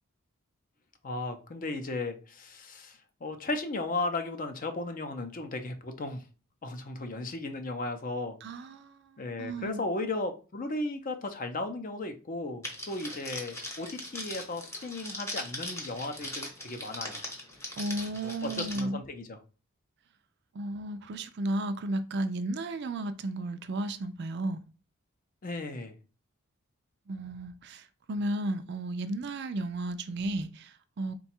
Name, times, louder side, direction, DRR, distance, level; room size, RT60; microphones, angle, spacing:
voice 1, 1.0-6.3 6.6-8.4 9.2-17.2 18.2-19.4 25.4-26.0, left 2 dB, 40° left, 0.5 m, -35 dB
voice 2, 8.4-9.8 17.8-19.0 20.5-24.6 27.1-31.1, right 1 dB, 50° right, 0.4 m, -34 dB
Crackle, 12.6-18.8, left 1 dB, 10° left, 0.9 m, -40 dB
3.9 x 2.3 x 4.3 m
head